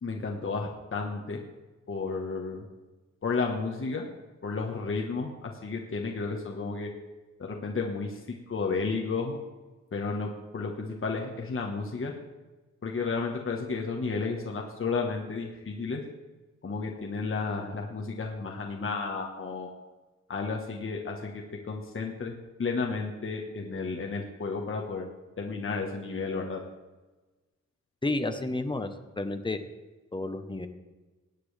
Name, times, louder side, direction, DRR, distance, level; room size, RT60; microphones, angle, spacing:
voice 1, 0.0-1.4 1.9-2.6 3.2-4.1 4.4-6.9 7.4-9.4 9.9-12.1 12.8-16.0 16.6-19.7 20.3-22.3 22.6-25.1 25.4-26.6, left 4 dB, 45° left, 0 dB, 1.3 m, -32 dB
voice 2, 28.0-29.6 30.1-30.7, left 2 dB, 15° left, 7 dB, 0.9 m, -31 dB
20.5 x 8.5 x 3.3 m, 1.2 s
wide cardioid pair, 130°, 29 cm